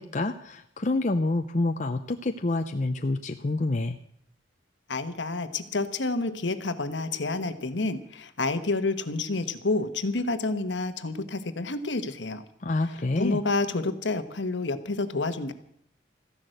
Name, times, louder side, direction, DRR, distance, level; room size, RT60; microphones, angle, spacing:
voice 1, 0.0-4.0 12.6-13.4, left 2 dB, 40° left, 6 dB, 0.6 m, -27 dB
voice 2, 4.9-12.4 13.2-15.5, left 3 dB, 70° left, 10 dB, 1.2 m, -29 dB
14.5 x 11.0 x 7.8 m, 0.68 s
head